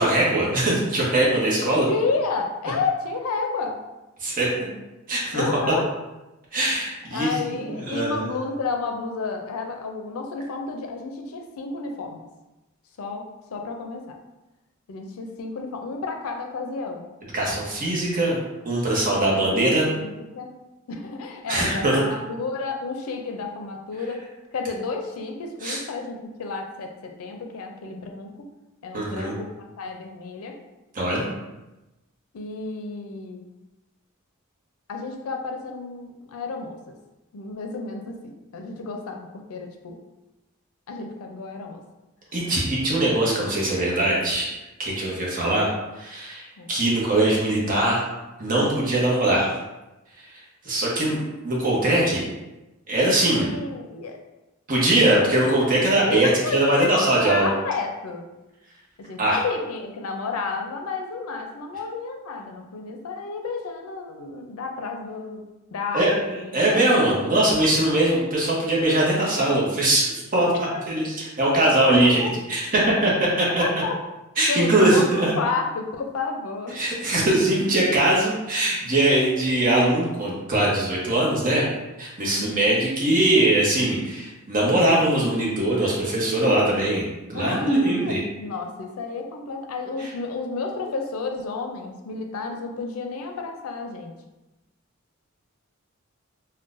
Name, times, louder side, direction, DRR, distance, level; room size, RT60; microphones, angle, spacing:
voice 1, 0.0-1.9 4.2-4.7 5.1-5.4 6.5-8.2 17.3-18.4 18.6-19.9 21.5-22.0 25.6-25.8 28.9-29.3 30.9-31.3 42.3-44.5 44.8-48.1 48.4-49.5 50.6-52.2 52.9-53.5 54.7-57.5 59.2-59.4 65.9-66.3 66.5-70.5 70.9-72.2 72.5-73.1 73.4-73.6 74.4-75.3 76.7-81.6 82.0-87.0 87.3-88.2, right 1 dB, 40° right, -4 dB, 0.8 m, -21 dB
voice 2, 1.5-3.8 5.3-5.8 7.1-12.3 13.0-14.2 14.9-17.1 19.1-20.5 20.9-24.2 24.5-28.5 28.8-30.6 32.3-33.4 34.9-36.8 37.3-40.0 40.9-41.8 45.3-45.5 46.6-46.7 53.3-54.2 56.0-58.3 59.0-65.4 65.7-66.8 67.9-68.1 70.7-70.8 72.2-72.3 73.6-74.0 74.5-76.8 82.2-82.7 87.3-94.2, left 4 dB, 90° left, 4 dB, 0.4 m, -31 dB
3.8 x 2.2 x 2.5 m, 1.0 s
head